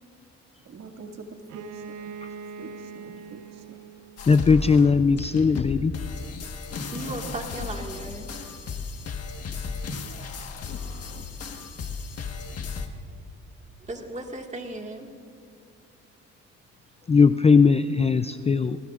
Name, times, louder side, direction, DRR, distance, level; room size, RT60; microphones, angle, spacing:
voice 1, 0.6-2.1 2.6-3.6 7.2-7.3, right 4 dB, 60° right, 2 dB, 2.2 m, -44 dB
Bowed string instrument, 1.5-5.2, right 6 dB, 80° right, 0.9 m, -42 dB
sound 1, 4.2-12.9, left 5 dB, 55° left, 1.4 m, -35 dB
voice 2, 4.3-6.0 17.1-18.8, left 5 dB, 20° left, 11 dB, 0.4 m, -19 dB
voice 3, 6.9-8.3 13.8-15.1, right 2 dB, 25° right, 2 dB, 1.9 m, -36 dB
28.5 x 19.0 x 2.5 m, 2.4 s
cardioid pair, 90°, 30 cm